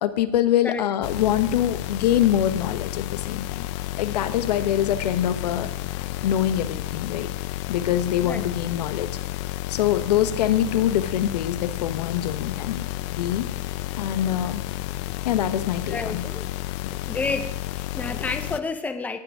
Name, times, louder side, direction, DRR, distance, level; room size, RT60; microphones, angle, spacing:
voice 1, 0.0-3.7 4.0-5.7 6.2-7.3 7.7-9.1 9.7-12.8 13.1-13.5 14.0-14.6 15.2-16.2 16.8-17.0, left 11 dB, 75° left, 10 dB, 1.2 m, -24 dB
sound 1, 1.0-18.6, left 16 dB, 45° left, 0.6 m, -31 dB
voice 2, 15.9-16.5 17.0-19.2, left 4 dB, 5° left, 8 dB, 0.8 m, -30 dB
18.5 x 7.9 x 4.8 m, 0.84 s
supercardioid pair, 140°, 21 cm